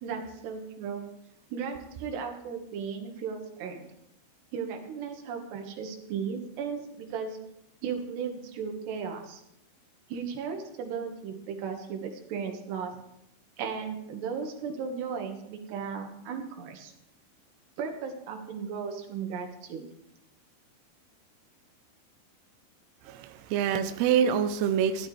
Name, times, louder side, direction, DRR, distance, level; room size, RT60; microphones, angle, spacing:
voice 1, 0.0-1.0 1.5-3.9 4.5-7.4 7.8-9.4 10.1-13.0 13.6-16.9 17.8-19.9, right 6 dB, 65° right, 3 dB, 3.4 m, -36 dB
voice 2, 23.0-25.1, right 8 dB, 80° right, 8 dB, 2.4 m, -26 dB
17.5 x 12.0 x 3.3 m, 0.80 s
omnidirectional pair, 5.5 m